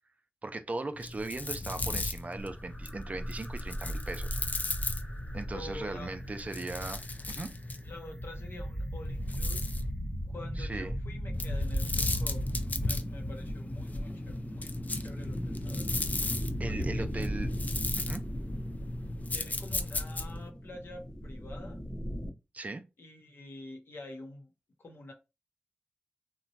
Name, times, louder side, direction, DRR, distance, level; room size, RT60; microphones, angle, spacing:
voice 1, 0.4-4.3 5.3-7.0 7.3-7.5 10.6-10.9 16.6-17.5 18.0-18.2 22.5-22.9, right 2 dB, 40° right, 0.4 m, -38 dB
sound 1, 1.0-5.4 6.2-8.0 9.1-9.9 11.3-20.5, left 2 dB, 45° left, 0.3 m, -36 dB
sound 2, 2.4-22.3, equal, 20° left, 0.7 m, -37 dB
voice 2, 5.5-6.5 7.8-9.6 10.3-12.5 12.8-16.0 16.6-17.3 19.3-21.8 23.0-24.5 24.8-25.1, left 2 dB, 75° left, 0.7 m, -47 dB
2.9 x 2.1 x 2.7 m
cardioid pair, 50°, 4 cm